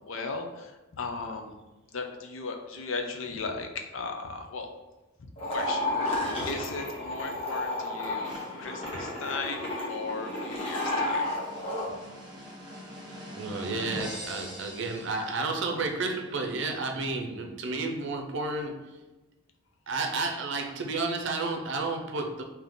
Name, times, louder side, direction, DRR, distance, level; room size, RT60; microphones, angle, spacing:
voice 1, 0.1-1.5 1.9-4.7 5.5-11.3, left 4 dB, 75° left, 4 dB, 0.6 m, -37 dB
sound 1, 5.4-11.9, left 1 dB, 30° left, 1.1 m, -32 dB
sound 2, 8.2-15.8, equal, 20° right, 1.0 m, -44 dB
voice 2, 13.3-19.0 19.9-22.4, right 3 dB, 60° right, 3 dB, 0.6 m, -31 dB
3.5 x 2.8 x 3.8 m, 1.1 s
head